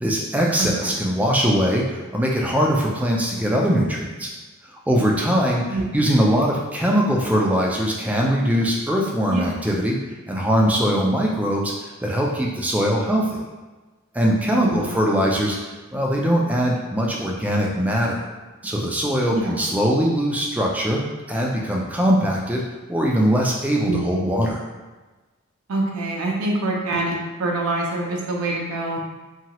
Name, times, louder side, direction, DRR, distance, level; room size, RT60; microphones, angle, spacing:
voice 1, 0.0-4.3 4.7-10.0 10.3-13.4 14.1-15.6 15.9-18.2 18.6-21.0 21.3-22.6 22.9-24.6, equal, 5° right, -2 dB, 0.3 m, -21 dB
voice 2, 0.6-0.9 5.7-5.8 9.3-9.5 14.5-14.9 19.3-19.5 23.8-24.1 25.7-29.1, right 2 dB, 90° right, -2 dB, 0.5 m, -25 dB
2.8 x 2.3 x 2.9 m, 1.3 s
head